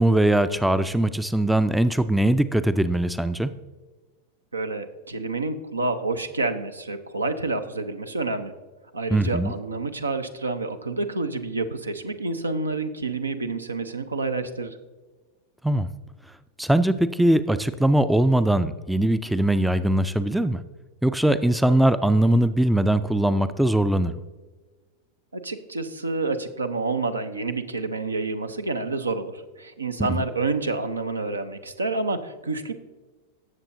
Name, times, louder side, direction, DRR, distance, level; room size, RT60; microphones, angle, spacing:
voice 1, 0.0-3.5 9.1-9.5 15.6-15.9 16.6-20.6 21.0-24.2 30.1-30.2, right 1 dB, ahead, 13 dB, 0.4 m, -21 dB
voice 2, 4.5-8.5 8.9-14.8 25.3-32.7, right 3 dB, 80° right, 9 dB, 0.7 m, -28 dB
17.0 x 7.2 x 2.6 m, 1.3 s
figure-of-eight pair, 90°, 0 cm